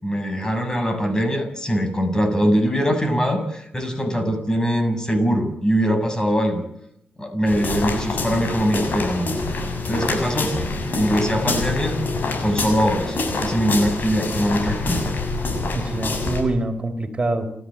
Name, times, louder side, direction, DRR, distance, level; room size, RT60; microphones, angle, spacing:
voice 1, 0.0-6.6 7.2-9.3 9.9-10.6 11.0-12.0 12.4-15.0, equal, 20° left, 7 dB, 7.0 m, -22 dB
sound 1, 7.5-16.4, left 3 dB, 65° left, 6.9 m, -26 dB
voice 2, 15.7-17.6, right 2 dB, 30° right, 6 dB, 4.4 m, -25 dB
29.5 x 14.0 x 8.9 m, 0.76 s
cardioid pair, 80°, 3 cm